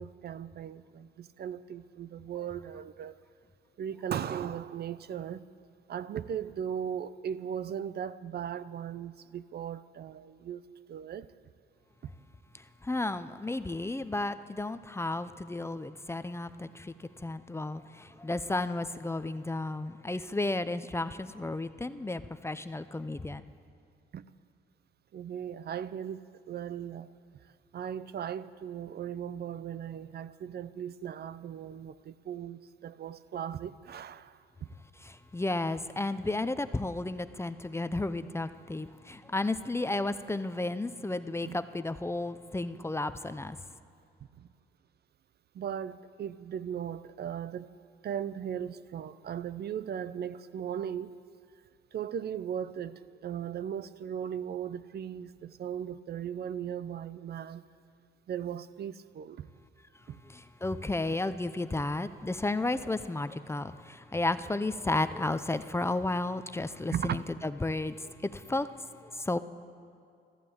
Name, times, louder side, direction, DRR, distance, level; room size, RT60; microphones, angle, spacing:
voice 1, 0.0-3.2 3.8-5.5 5.9-11.3 12.0-12.1 24.1-24.2 25.1-27.1 27.7-34.4 41.4-41.6 44.4-44.5 45.5-47.7 48.0-51.2 51.9-57.6 58.3-59.5 60.1-60.2 66.9-67.2, right 9 dB, 55° right, 0.6 m, -37 dB
voice 2, 12.8-23.4 35.0-43.6 60.2-68.7 69.0-69.4, left 2 dB, 15° left, 0.6 m, -33 dB
14.0 x 11.5 x 8.7 m
cardioid pair, 90°, 20 cm